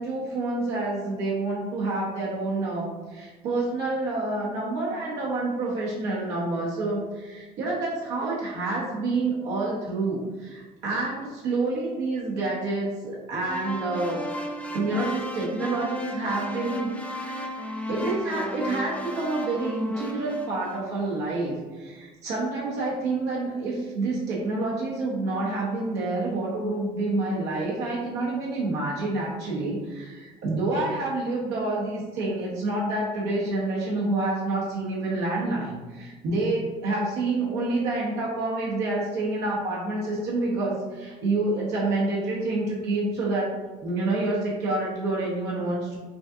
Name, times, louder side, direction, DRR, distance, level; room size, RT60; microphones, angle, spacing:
voice 1, 0.0-14.3 14.7-17.5 17.9-43.6 43.8-46.0, right 2 dB, 85° right, -5 dB, 0.9 m, -28 dB
sound 1, 13.5-21.0, equal, 10° left, 0.4 m, -34 dB
5.1 x 2.5 x 2.7 m, 1.3 s
cardioid pair, 110°, 17 cm